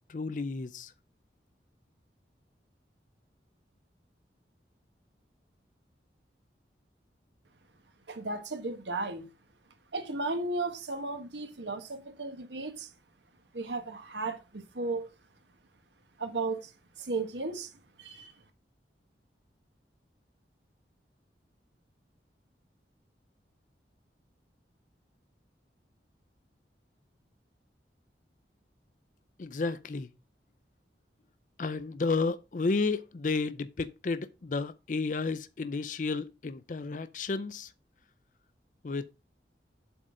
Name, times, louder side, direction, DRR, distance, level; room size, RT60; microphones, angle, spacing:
voice 1, 0.1-0.9 29.4-30.1 31.6-37.7 38.8-39.1, left 3 dB, 45° left, 0.5 m, -32 dB
voice 2, 8.1-9.3 9.9-12.9 13.5-15.1 16.2-16.7 17.0-17.7 18.0-18.3, right 3 dB, 80° right, 1.3 m, -35 dB
7.8 x 3.9 x 6.2 m
head